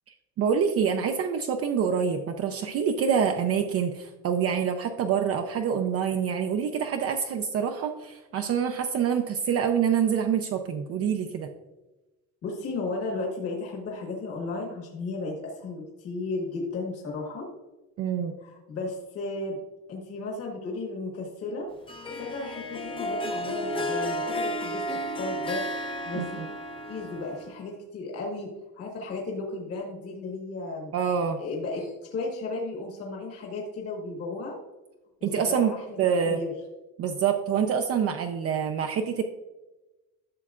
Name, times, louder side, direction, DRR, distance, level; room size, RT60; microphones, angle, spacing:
voice 1, 0.4-11.5 18.0-18.3 26.1-26.5 30.9-31.4 35.2-35.7 36.0-36.4 37.0-39.2, right 7 dB, 45° right, 4 dB, 0.5 m, -26 dB
voice 2, 12.4-17.5 18.4-19.6 19.9-21.7 22.0-25.6 26.1-26.4 26.8-30.9 31.3-34.6 35.2-36.0 36.3-36.5, left 3 dB, 45° left, -1 dB, 1.4 m, -34 dB
Harp, 21.9-27.7, equal, 15° left, 0.6 m, -32 dB
12.0 x 7.1 x 2.4 m, 1.1 s
cardioid pair, 180°, 33 cm